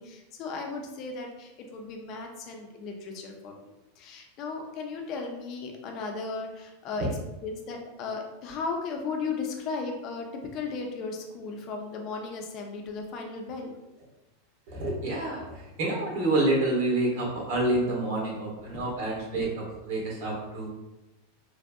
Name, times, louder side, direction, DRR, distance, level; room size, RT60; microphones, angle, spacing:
voice 1, 0.0-7.1 7.4-13.8 18.6-19.1, left 4 dB, 45° left, 2 dB, 0.6 m, -36 dB
voice 2, 14.7-20.7, right 2 dB, 65° right, -3 dB, 1.4 m, -28 dB
3.3 x 2.6 x 2.3 m, 0.99 s
hypercardioid pair, 115°, 0 cm